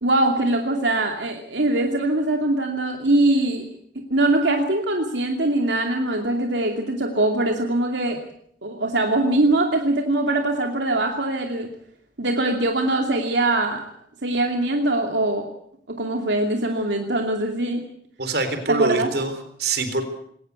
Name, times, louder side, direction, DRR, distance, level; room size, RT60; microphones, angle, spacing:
voice 1, 0.0-3.7 3.9-8.2 8.6-11.7 12.2-13.8 14.2-15.5 15.9-17.8 18.7-19.1, right 2 dB, 75° right, 3 dB, 2.6 m, -22 dB
voice 2, 18.2-20.0, right 3 dB, 55° right, 9 dB, 3.8 m, -24 dB
22.0 x 18.0 x 8.2 m, 0.67 s
head